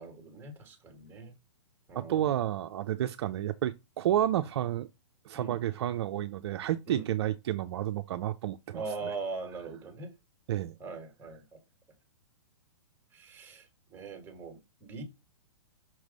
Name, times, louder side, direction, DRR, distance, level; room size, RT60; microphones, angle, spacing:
voice 1, 0.0-1.3 1.9-2.2 5.3-5.6 6.9-7.0 8.7-10.1 10.8-11.4 13.1-13.6 13.9-15.0, right 4 dB, 15° right, 1.6 m, -41 dB
voice 2, 2.0-4.9 5.2-9.1 10.5-10.7, right 12 dB, 60° right, 0.5 m, -31 dB
6.0 x 3.2 x 5.2 m
hypercardioid pair, 135°, 16 cm